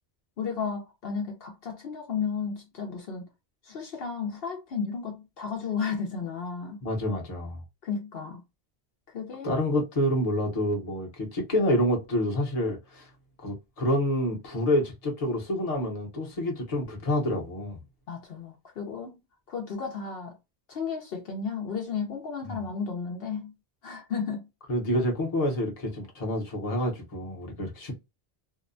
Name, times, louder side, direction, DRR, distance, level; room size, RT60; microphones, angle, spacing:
voice 1, 0.4-3.3 3.6-6.8 7.8-8.4 9.1-9.5 18.1-19.2 19.5-20.4 20.7-23.5 23.8-24.5, left 5 dB, 70° left, 0.8 m, -33 dB
voice 2, 6.8-7.6 9.4-13.1 13.4-17.8 22.4-22.6 24.7-27.9, left 1 dB, 40° left, 0.9 m, -28 dB
2.7 x 2.1 x 2.5 m
omnidirectional pair, 1.0 m